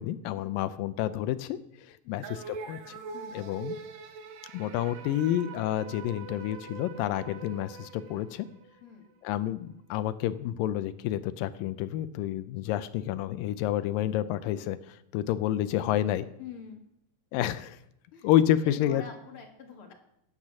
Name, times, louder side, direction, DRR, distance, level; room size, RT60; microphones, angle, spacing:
voice 1, 0.0-1.6 1.9-3.0 3.3-3.8 4.5-8.5 9.2-14.8 15.1-16.3 17.3-17.8 18.2-19.0, left 12 dB, 85° left, 13 dB, 2.3 m, -29 dB
sound 1, 2.2-8.8, right 5 dB, 75° right, 2.8 m, -43 dB
voice 2, 3.1-3.5 8.8-9.1 16.4-16.8 18.1-18.3 18.6-19.9, left 7 dB, 45° left, 3 dB, 2.1 m, -46 dB
12.0 x 9.0 x 6.1 m, 0.78 s
omnidirectional pair, 4.0 m